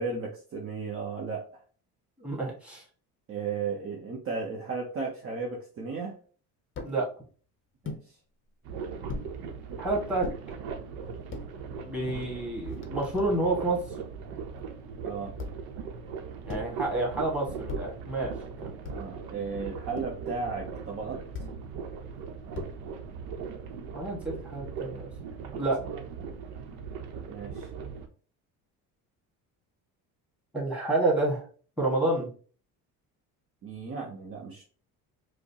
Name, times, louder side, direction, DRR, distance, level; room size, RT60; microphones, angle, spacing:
voice 1, 0.0-1.5 3.3-6.2 7.8-8.2 15.0-15.3 18.8-21.2 25.9-26.0 27.3-27.7 33.6-34.6, right 4 dB, 35° right, -1 dB, 0.7 m, -35 dB
voice 2, 2.2-2.8 6.8-7.1 9.8-10.3 11.8-13.8 16.5-18.3 18.6-18.7 23.9-25.1 25.6-25.8 30.5-31.4 31.8-32.3, right 2 dB, 5° right, -2 dB, 1.7 m, -29 dB
sound 1, 6.8-7.0 7.8-8.1 9.1-9.3 10.2-10.4 11.1-11.5 12.2-12.3 12.5-13.6 15.4-15.7 16.5-16.8 17.7-18.0 18.8-19.2 20.0-20.3 21.3-21.6 22.5-23.0, left 4 dB, 35° left, 0.6 m, -39 dB
sound 2, 8.6-28.1, right 6 dB, 80° right, 0.7 m, -39 dB
4.8 x 2.0 x 2.8 m, 0.41 s
cardioid pair, 95°, 38 cm